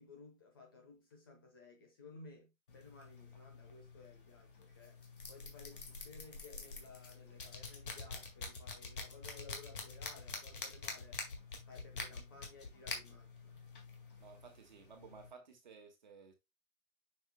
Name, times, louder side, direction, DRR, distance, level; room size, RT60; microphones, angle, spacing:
voice 1, 0.0-11.2 11.7-13.6, left 4 dB, 15° left, 1.0 m, -57 dB
sound 1, 2.7-15.3, left 4 dB, 40° left, 2.0 m, -47 dB
voice 2, 14.2-16.3, right 5 dB, 35° right, 1.7 m, -56 dB
7.8 x 6.4 x 2.2 m
figure-of-eight pair, 150°, 41 cm